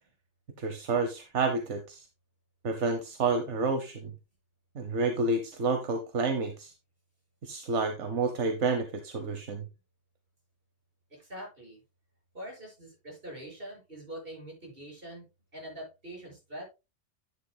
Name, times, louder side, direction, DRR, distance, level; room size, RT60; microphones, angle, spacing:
voice 1, 0.6-2.1 2.6-4.1 4.7-6.7 7.4-9.7, right 3 dB, 80° right, 7 dB, 1.3 m, -29 dB
voice 2, 11.1-11.8 12.3-16.7, right 1 dB, 50° right, -2 dB, 6.4 m, -44 dB
10.5 x 9.9 x 2.2 m, 0.26 s
omnidirectional pair, 1.2 m